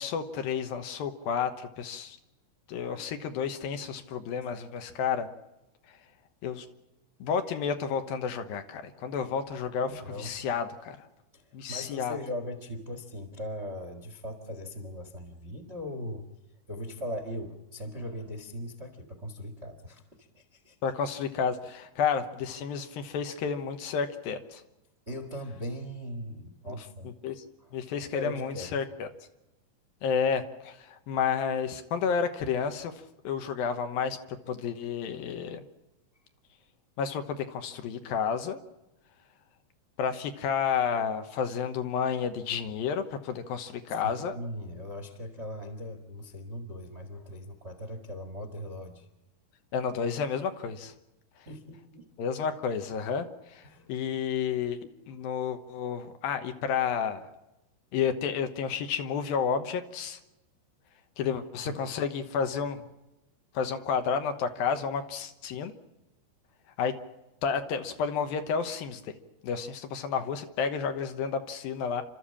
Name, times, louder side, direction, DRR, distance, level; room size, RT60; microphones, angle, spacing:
voice 1, 0.0-2.2 2.7-5.3 5.9-6.0 6.4-6.7 7.2-11.0 11.5-12.2 20.8-24.6 27.2-27.4 27.7-29.1 30.0-32.9 33.2-35.6 37.0-38.6 40.0-44.4 49.7-50.9 52.2-54.8 55.1-57.3 57.9-60.2 61.2-62.8 63.5-65.7 66.8-66.9 67.4-69.1 69.4-72.0, left 6 dB, 70° left, 8 dB, 2.8 m, -31 dB
voice 2, 9.8-10.3 11.3-16.3 16.7-20.8 25.1-27.1 27.6-27.7 28.0-28.8 44.0-49.1 51.4-52.1 53.6-53.9 61.3-61.8, left 1 dB, 30° right, 6 dB, 1.2 m, -39 dB
29.5 x 13.5 x 8.6 m, 0.96 s
omnidirectional pair, 4.6 m